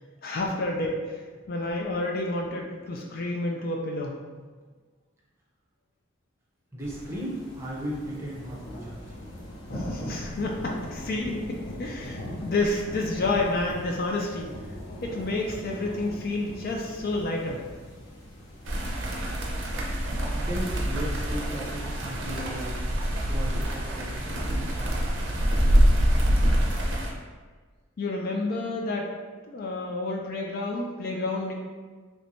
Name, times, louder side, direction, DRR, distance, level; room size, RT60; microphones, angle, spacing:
voice 1, 0.2-1.2 1.5-4.2 9.7-14.5 15.0-17.6 28.0-29.1 29.5-31.5, left 2 dB, 45° left, 0 dB, 0.3 m, -29 dB
voice 2, 6.7-9.1 19.7-22.8 23.3-25.4, right 1 dB, 10° right, -6 dB, 0.6 m, -37 dB
sound 1, 6.8-26.2, equal, 65° left, 0.8 m, -41 dB
sound 2, 18.6-27.1, equal, 60° right, 0.6 m, -25 dB
3.2 x 3.1 x 2.6 m, 1.4 s
head